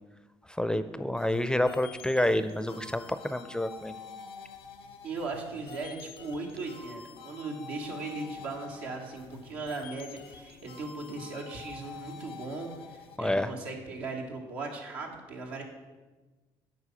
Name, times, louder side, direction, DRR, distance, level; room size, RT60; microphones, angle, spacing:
voice 1, 0.6-3.9 13.2-13.5, left 1 dB, 5° left, 12 dB, 0.5 m, -28 dB
sound 1, 1.2-13.2, left 6 dB, 90° left, 0.7 m, -47 dB
voice 2, 5.0-15.6, right 3 dB, 85° right, 0 dB, 1.3 m, -38 dB
8.1 x 4.7 x 5.8 m, 1.2 s
hypercardioid pair, 60°, 13 cm